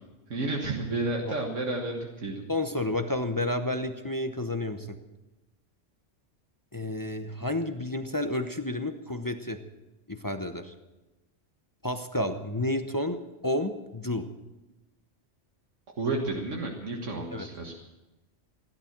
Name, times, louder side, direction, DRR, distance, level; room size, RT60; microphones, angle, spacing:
voice 1, 0.3-2.4 16.0-17.7, right 2 dB, 85° right, 0 dB, 2.0 m, -31 dB
voice 2, 2.5-5.0 6.7-9.6 10.1-10.7 11.8-14.3 17.3-17.5, left 1 dB, 20° left, 7 dB, 0.8 m, -31 dB
17.0 x 11.5 x 7.4 m, 1.1 s
omnidirectional pair, 1.2 m